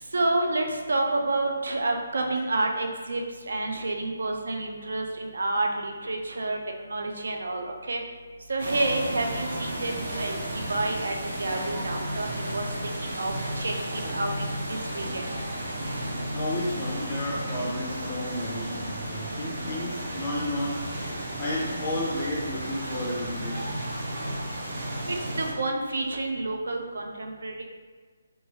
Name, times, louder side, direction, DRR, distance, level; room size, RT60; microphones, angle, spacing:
voice 1, 0.0-6.6 6.9-8.0 8.5-10.3 10.7-14.3 14.7-15.2 25.1-27.6, right 2 dB, 80° right, 3 dB, 0.4 m, -29 dB
sound 1, 8.6-25.5, right 1 dB, 55° right, 0.8 m, -33 dB
voice 2, 16.3-21.1 21.4-24.0, left 1 dB, 15° left, -5 dB, 0.3 m, -32 dB
2.9 x 2.2 x 2.7 m, 1.5 s
hypercardioid pair, 170°, 0 cm